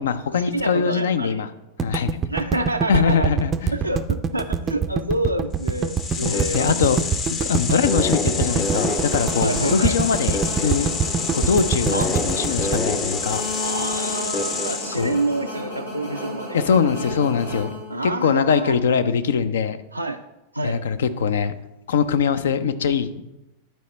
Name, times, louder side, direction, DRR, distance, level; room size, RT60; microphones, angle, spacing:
voice 1, 0.0-1.5 1.8-2.1 2.9-3.5 6.2-7.0 7.3-10.9 11.3-13.4 15.0-15.2 16.5-17.7 18.0-19.8 20.6-21.5 21.9-23.2, left 6 dB, 65° left, 12 dB, 0.5 m, -22 dB
voice 2, 0.5-1.4 2.3-3.3 3.7-6.9 7.7-7.9 9.4-10.0 11.9-12.1 13.6-16.6 17.9-18.8 19.9-20.2 20.5-20.8, right 2 dB, 90° right, 3 dB, 0.3 m, -27 dB
sound 1, 1.8-14.0, right 6 dB, 25° right, 0.4 m, -25 dB
sound 2, 5.6-15.2, left 4 dB, 30° left, 0.7 m, -27 dB
sound 3, 7.9-18.3, left 1 dB, 90° left, 2.9 m, -33 dB
11.0 x 4.6 x 4.2 m, 0.95 s
figure-of-eight pair, 90°, 0 cm